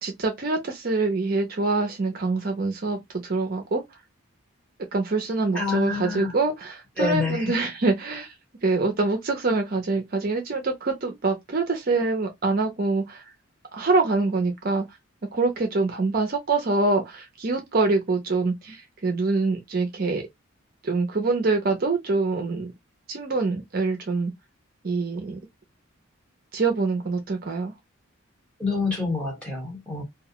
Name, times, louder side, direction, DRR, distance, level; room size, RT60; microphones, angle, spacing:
voice 1, 0.0-3.8 4.9-8.3 8.6-13.3 13.7-14.8 15.3-20.2 20.8-22.7 23.1-24.3 24.8-25.4 26.5-27.7, right 3 dB, 40° right, 0.5 m, -25 dB
voice 2, 5.5-6.3 7.0-7.5 28.6-30.0, left 3 dB, 5° left, 1.1 m, -27 dB
2.3 x 2.2 x 2.8 m
head